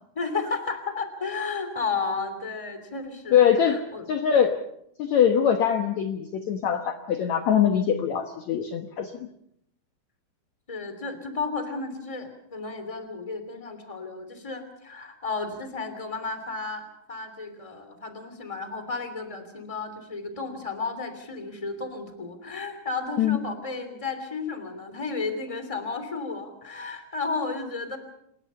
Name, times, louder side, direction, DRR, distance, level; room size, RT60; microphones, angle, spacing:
voice 1, 0.2-4.1 10.7-28.0, left 4 dB, 10° left, 9 dB, 2.1 m, -33 dB
voice 2, 3.3-3.8 4.1-4.6 5.0-9.3 23.2-23.4, left 8 dB, 75° left, 6 dB, 1.7 m, -22 dB
27.5 x 21.0 x 5.6 m, 0.75 s
omnidirectional pair, 5.0 m